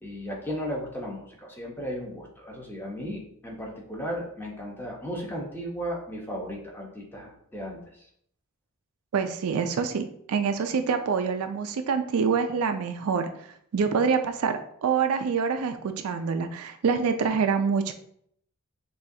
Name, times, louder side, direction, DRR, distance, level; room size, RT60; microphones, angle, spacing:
voice 1, 0.0-7.8, equal, 10° left, -2 dB, 0.8 m, -35 dB
voice 2, 9.1-13.3 13.7-17.9, right 6 dB, 70° right, 8 dB, 0.4 m, -26 dB
6.1 x 2.3 x 2.7 m, 0.67 s
head